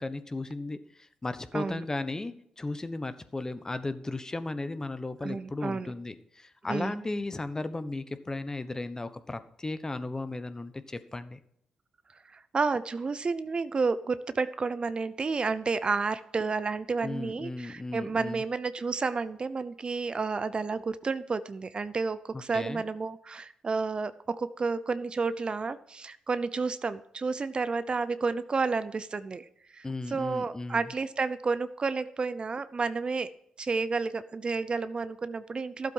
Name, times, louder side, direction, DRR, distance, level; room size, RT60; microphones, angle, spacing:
voice 1, 0.0-11.4 17.0-18.4 22.5-22.8 29.8-30.8, left 2 dB, 25° left, 11 dB, 1.1 m, -35 dB
voice 2, 5.2-5.9 6.7-6.9 12.3-33.3 33.6-35.9, right 4 dB, 45° right, 14 dB, 0.7 m, -31 dB
12.0 x 7.8 x 5.6 m, 0.70 s
supercardioid pair, 50°, 2 cm